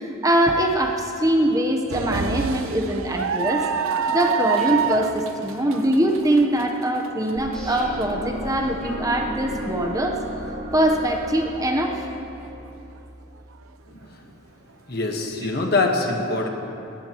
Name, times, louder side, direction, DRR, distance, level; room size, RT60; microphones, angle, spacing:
voice 1, 0.0-3.6 4.1-10.1 10.7-12.0, right 1 dB, 15° right, 2 dB, 0.9 m, -22 dB
sound 1, 1.9-8.0 8.5-8.6 9.8-10.0, right 6 dB, 80° right, 0.6 m, -27 dB
sound 2, 4.6-10.4, equal, 5° left, 4.2 m, -43 dB
sound 3, 7.4-13.4, equal, 50° right, 3.3 m, -35 dB
voice 2, 13.9-14.3 14.9-16.5, left 3 dB, 50° left, 2 dB, 1.4 m, -24 dB
20.0 x 18.0 x 3.0 m, 2.8 s
head